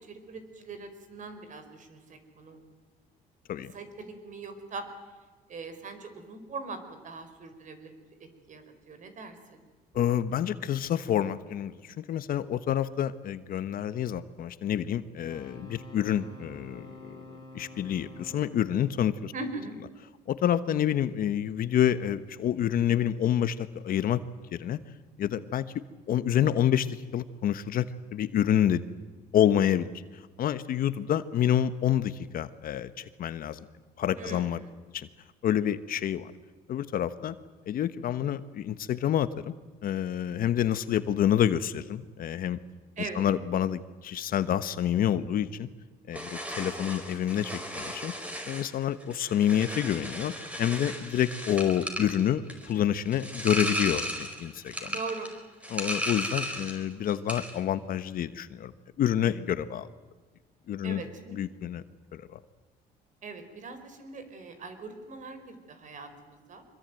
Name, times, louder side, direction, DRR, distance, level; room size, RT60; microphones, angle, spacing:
voice 1, 0.1-2.6 3.7-4.9 5.5-7.9 8.5-9.6 19.3-19.7 34.1-34.7 43.0-43.2 54.8-55.3 56.4-56.5 60.8-61.4 63.2-66.6, right 3 dB, 50° right, 9 dB, 4.9 m, -41 dB
voice 2, 9.9-17.2 17.5-19.3 20.3-24.2 24.5-24.8 25.2-25.6 26.1-27.9 28.1-28.8 29.3-29.9 30.4-33.6 34.0-34.6 34.9-35.1 35.4-36.3 36.7-37.3 37.7-39.5 39.8-42.6 43.0-45.7 46.1-48.1 48.5-54.9 55.7-58.7 59.0-59.9 60.7-61.8 62.1-62.4, left 10 dB, 60° left, 13 dB, 1.3 m, -28 dB
sound 1, 15.1-20.2 23.0-23.1, left 2 dB, 25° left, 4.7 m, -49 dB
sound 2, 46.1-56.8 57.1-57.6, equal, 10° right, 5.1 m, -35 dB
25.0 x 22.5 x 9.1 m, 1.3 s
cardioid pair, 110°, 17 cm